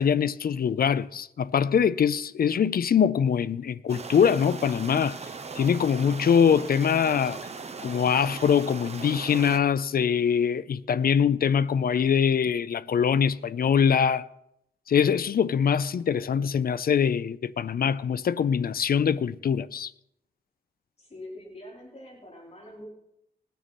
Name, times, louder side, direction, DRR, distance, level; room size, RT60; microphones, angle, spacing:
voice 1, 0.0-5.2 5.6-7.4 7.8-14.3 14.9-19.9, left 7 dB, 60° left, 0.5 m, -23 dB
sound 1, 3.9-9.6, right 4 dB, 40° right, 0.8 m, -39 dB
voice 2, 21.0-22.9, left 1 dB, 35° left, 4.4 m, -44 dB
20.5 x 9.2 x 4.2 m
wide cardioid pair, 165°, 18 cm